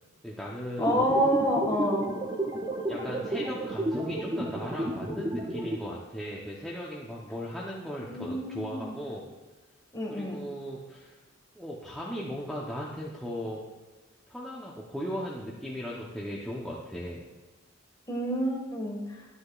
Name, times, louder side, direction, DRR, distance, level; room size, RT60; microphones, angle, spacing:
voice 1, 0.2-1.4 2.9-9.3 10.1-11.2 11.5-13.6 14.3-17.2, equal, ahead, -5 dB, 0.8 m, -37 dB
voice 2, 0.8-2.1 8.1-8.9 9.9-10.5 18.1-19.2, equal, 20° left, -1 dB, 1.7 m, -28 dB
sound 1, 0.8-5.8, right 1 dB, 20° right, 0.6 m, -32 dB
12.0 x 9.8 x 2.4 m, 1.2 s
head